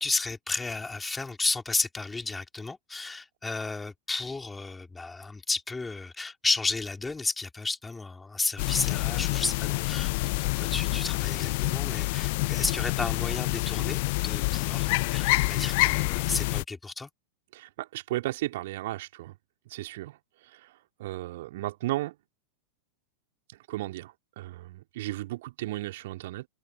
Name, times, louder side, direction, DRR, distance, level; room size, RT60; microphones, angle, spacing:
voice 1, 0.0-17.1, left 3 dB, 10° left, 4.6 m, -33 dB
sound 1, 8.6-16.6, left 24 dB, 50° left, 0.5 m, -27 dB
voice 2, 17.5-19.4 19.7-20.2 20.5-20.7 21.0-22.1 23.7-26.5, right 17 dB, 55° right, 4.2 m, -34 dB
figure-of-eight pair, 90°, 0 cm